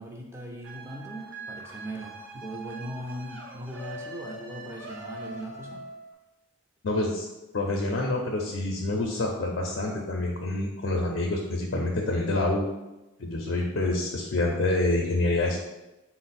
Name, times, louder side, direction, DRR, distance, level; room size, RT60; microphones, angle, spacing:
voice 1, 0.0-5.8, right 1 dB, 15° right, 0 dB, 0.4 m, -39 dB
sound 1, 0.6-6.1, right 2 dB, 65° right, 0.6 m, -42 dB
voice 2, 6.8-7.3 7.5-12.7 13.2-15.6, left 2 dB, 65° left, 0 dB, 0.4 m, -27 dB
4.6 x 2.0 x 4.1 m, 1.0 s
head